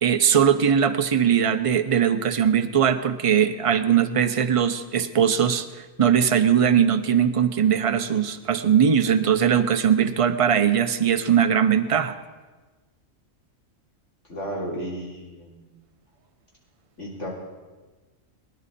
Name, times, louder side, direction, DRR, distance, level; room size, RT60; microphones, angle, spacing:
voice 1, 0.0-5.7 6.0-12.1, right 8 dB, 35° right, 8 dB, 0.6 m, -20 dB
voice 2, 14.3-15.7 17.0-17.3, equal, 65° left, -4 dB, 4.0 m, -33 dB
22.5 x 11.0 x 4.2 m, 1.3 s
omnidirectional pair, 1.4 m